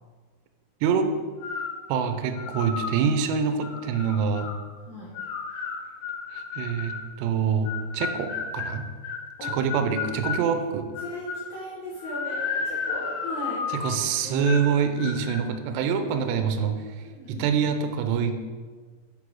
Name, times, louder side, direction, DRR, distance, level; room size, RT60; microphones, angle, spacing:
voice 1, 0.8-1.1 1.9-4.5 6.3-8.9 9.4-10.9 13.7-18.4, right 6 dB, 85° right, 7 dB, 2.6 m, -26 dB
sound 1, 1.4-1.8 2.4-3.0 3.6-4.6 5.2-7.1 7.7-10.5 11.0-11.5 12.0-14.0 14.4-14.7 15.0-15.4, left 6 dB, 85° left, 3.2 m, -33 dB
voice 2, 11.0-13.6 14.2-14.5 17.0-17.5, equal, 65° left, -7 dB, 2.0 m, -37 dB
8.3 x 4.7 x 4.6 m, 1.5 s
omnidirectional pair, 5.3 m